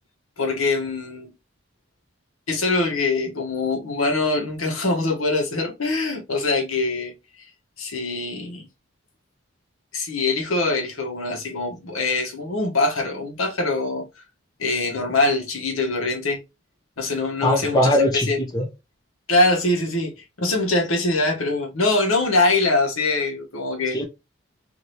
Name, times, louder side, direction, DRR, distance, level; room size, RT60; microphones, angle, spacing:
voice 1, 0.4-1.3 2.5-7.5 7.8-8.7 9.9-14.2 14.6-16.4 17.0-17.9 18.3-18.4 19.3-24.0, left 2 dB, 85° left, 1.0 m, -23 dB
voice 2, 17.4-18.7 23.9-24.0, left 1 dB, 20° left, 0.5 m, -20 dB
2.8 x 2.6 x 3.1 m
head